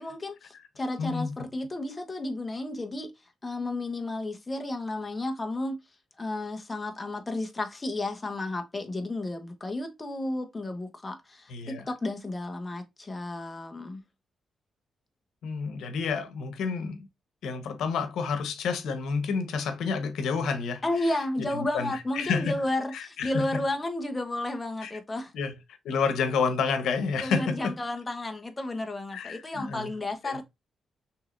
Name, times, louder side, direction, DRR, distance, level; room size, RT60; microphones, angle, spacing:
voice 1, 0.0-3.1 3.4-5.8 6.2-14.0 20.8-25.3 27.2-30.4, left 2 dB, 20° left, 0.8 m, -32 dB
voice 2, 1.0-1.3 11.5-11.9 15.4-17.1 17.4-22.6 22.9-23.5 24.8-24.9 25.3-25.6 25.8-27.7 29.1-29.9 30.2-30.4, left 5 dB, 85° left, 0.9 m, -30 dB
6.0 x 3.1 x 2.5 m
wide cardioid pair, 165°, 0 cm